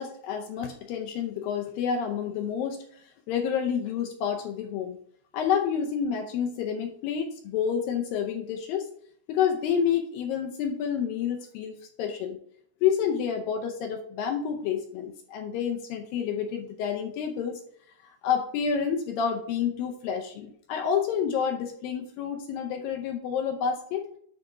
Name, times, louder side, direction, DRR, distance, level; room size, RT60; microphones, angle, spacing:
voice 1, 0.0-3.0 3.3-5.0 5.3-8.9 9.3-12.4 12.8-17.6 18.0-24.0, left 7 dB, 80° left, 3 dB, 2.1 m, -29 dB
9.3 x 3.5 x 4.9 m, 0.63 s
omnidirectional pair, 4.8 m